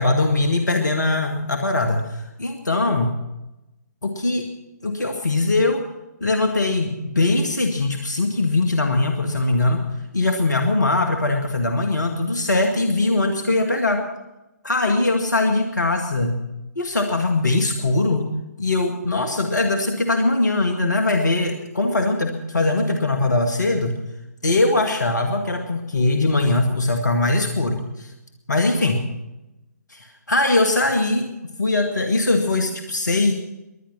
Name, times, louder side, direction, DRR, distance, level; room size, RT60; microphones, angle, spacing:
voice 1, 0.0-3.1 4.0-4.5 4.8-5.8 6.2-9.8 10.1-14.0 14.6-16.4 16.8-18.3 18.6-23.9 24.4-28.1 28.5-29.0 29.9-31.3 31.6-33.3, left 2 dB, 75° left, 4 dB, 2.1 m, -21 dB
21.5 x 10.5 x 6.0 m, 0.98 s
figure-of-eight pair, 135°, 10 cm